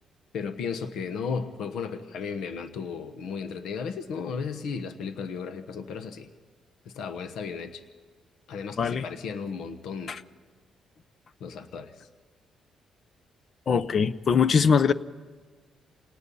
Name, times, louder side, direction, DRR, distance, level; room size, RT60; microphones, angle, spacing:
voice 1, 0.3-6.3 6.9-7.8 8.5-10.1 11.4-11.9, left 5 dB, 80° left, 9 dB, 1.1 m, -34 dB
voice 2, 8.8-9.1 10.1-10.2 13.7-14.9, left 6 dB, 50° left, 15 dB, 0.7 m, -22 dB
27.5 x 18.5 x 5.6 m, 1.4 s
cardioid pair, 90°, 0 cm